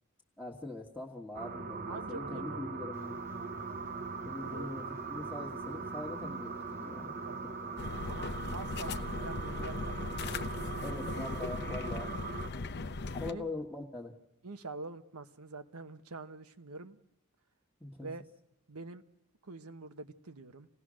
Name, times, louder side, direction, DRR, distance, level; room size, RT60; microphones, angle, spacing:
voice 1, 0.4-3.2 4.2-7.1 10.8-12.1 13.1-14.2 17.8-18.1, left 2 dB, 5° left, -4 dB, 1.5 m, -42 dB
sound 1, 1.3-12.5, right 5 dB, 45° right, 0.9 m, -41 dB
voice 2, 1.8-2.8 4.4-4.7 7.0-7.5 8.0-10.9 13.2-13.5 14.4-17.0 18.0-18.2 18.7-19.0 19.4-20.7, right 3 dB, 85° right, 9 dB, 1.1 m, -46 dB
sound 2, 2.9-9.2, left 3 dB, 10° right, 1.3 m, -51 dB
sound 3, 7.8-13.3, left 3 dB, 50° left, 0.8 m, -38 dB
27.0 x 17.5 x 6.3 m, 0.85 s
head